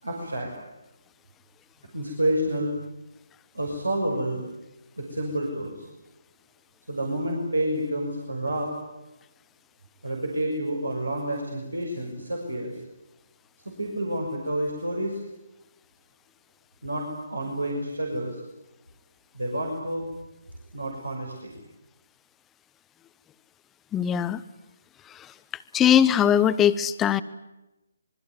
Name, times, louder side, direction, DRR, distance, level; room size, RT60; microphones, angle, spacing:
voice 1, 0.0-0.5 1.9-2.7 3.5-4.4 5.0-5.9 6.9-8.7 10.0-12.7 13.6-15.2 16.8-18.4 19.3-20.1 20.7-21.6, right 1 dB, 85° right, 1 dB, 6.2 m, -29 dB
voice 2, 23.9-24.4 25.1-25.3 25.7-27.2, left 9 dB, 15° left, 14 dB, 1.0 m, -21 dB
25.5 x 23.0 x 9.5 m, 0.97 s
figure-of-eight pair, 145°, 0 cm